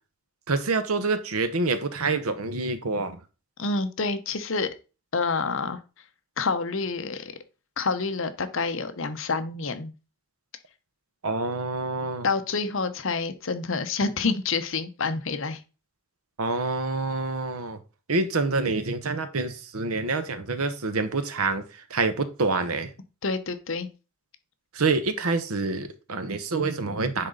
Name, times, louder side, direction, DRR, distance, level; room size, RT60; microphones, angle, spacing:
voice 1, 0.5-3.2 11.2-12.3 16.4-17.8 18.1-21.6 21.9-22.9 24.7-27.3, right 3 dB, 85° right, 10 dB, 1.0 m, -27 dB
voice 2, 3.6-4.7 5.1-5.8 6.4-7.3 7.8-9.9 12.2-15.6 23.2-23.9, left 4 dB, 60° left, 9 dB, 0.8 m, -28 dB
9.8 x 3.9 x 3.9 m, 0.32 s
head